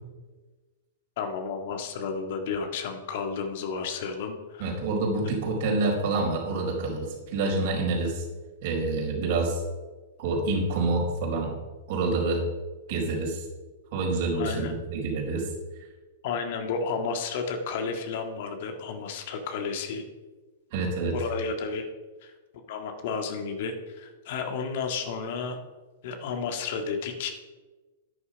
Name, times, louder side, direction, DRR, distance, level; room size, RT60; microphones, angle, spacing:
voice 1, 1.2-4.7 14.4-14.7 16.2-20.0 21.1-21.8 22.2-22.3 22.7-25.6 26.0-27.3, left 5 dB, 55° left, 5 dB, 1.8 m, -32 dB
voice 2, 4.6-8.2 8.6-9.6 10.2-11.5 11.9-12.4 12.9-13.4 13.9-15.5 20.7-21.2, right 3 dB, 55° right, 0 dB, 4.9 m, -27 dB
11.0 x 10.0 x 5.2 m, 1.3 s
figure-of-eight pair, 105°, 0 cm